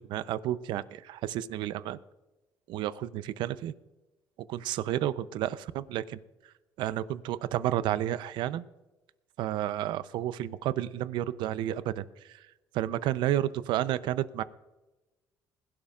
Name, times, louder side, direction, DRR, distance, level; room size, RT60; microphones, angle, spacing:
voice 1, 0.1-2.0 2.7-3.7 4.5-6.2 6.8-8.6 9.4-12.1 12.7-14.4, right 12 dB, 80° right, 15 dB, 0.6 m, -31 dB
21.5 x 11.5 x 2.5 m, 1.1 s
supercardioid pair, 85°, 8 cm